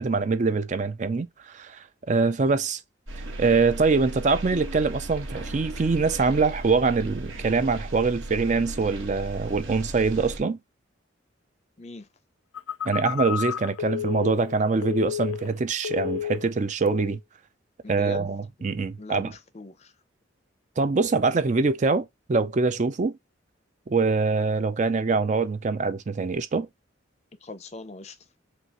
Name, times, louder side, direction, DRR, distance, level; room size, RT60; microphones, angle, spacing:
voice 1, 0.0-2.8 3.4-10.6 12.9-17.2 17.9-19.3 20.8-23.2 23.9-26.7, right 4 dB, 35° right, 0.4 m, -24 dB
sound 1, 3.1-10.4, right 1 dB, 90° right, 1.4 m, -36 dB
voice 2, 11.8-12.1 17.8-18.3 19.0-19.9 27.4-28.2, left 3 dB, 35° left, 0.6 m, -40 dB
Telephone, 12.5-15.6 15.8-16.5 16.9-17.2, left 9 dB, 85° left, 0.6 m, -31 dB
5.5 x 2.4 x 2.9 m
head